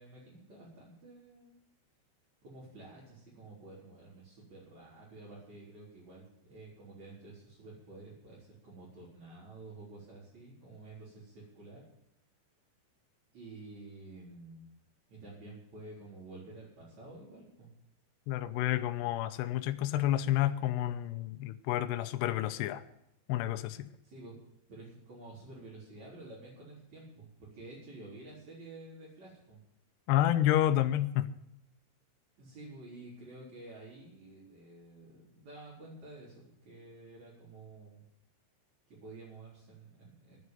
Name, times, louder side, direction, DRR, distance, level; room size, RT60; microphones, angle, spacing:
voice 1, 0.0-1.6 2.4-11.8 13.3-14.7 15.1-17.7 24.0-24.4 24.7-29.6 32.4-38.0 38.9-40.4, right 2 dB, 40° right, -7 dB, 5.2 m, -50 dB
voice 2, 18.3-22.8 23.3-23.9 30.1-31.3, left 13 dB, 80° left, 9 dB, 2.7 m, -29 dB
11.0 x 9.4 x 9.2 m, 0.84 s
omnidirectional pair, 5.2 m